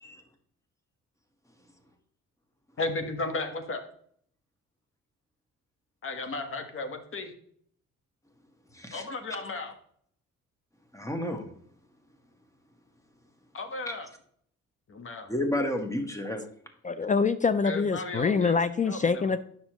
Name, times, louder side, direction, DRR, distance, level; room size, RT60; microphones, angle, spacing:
voice 1, 2.8-3.8 6.0-7.3 8.9-9.7 13.5-14.1 14.9-15.3 17.6-18.6 18.8-19.3, left 3 dB, 45° left, 1.3 m, -34 dB
voice 2, 8.7-9.0 10.9-11.4 13.9-14.0 15.3-16.4, left 1 dB, 10° left, 1.4 m, -31 dB
voice 3, 16.8-19.4, left 5 dB, 25° left, 0.4 m, -25 dB
9.6 x 6.1 x 3.0 m
cardioid pair, 90°, 30 cm